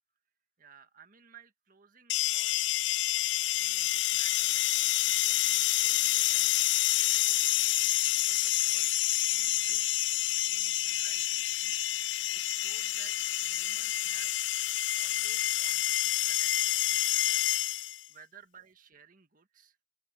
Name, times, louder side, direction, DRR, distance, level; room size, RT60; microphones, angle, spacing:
voice 1, 0.6-2.7 3.3-4.7 5.0-6.6 7.0-8.9 9.3-10.0 10.3-14.4 14.6-17.5 17.8-19.8, right 7 dB, 50° right, 1.7 m, -57 dB
sound 1, 2.1-18.1, left 15 dB, 80° left, 0.4 m, -28 dB
sound 2, 4.3-14.3, equal, 15° right, 5.1 m, -71 dB
open air
head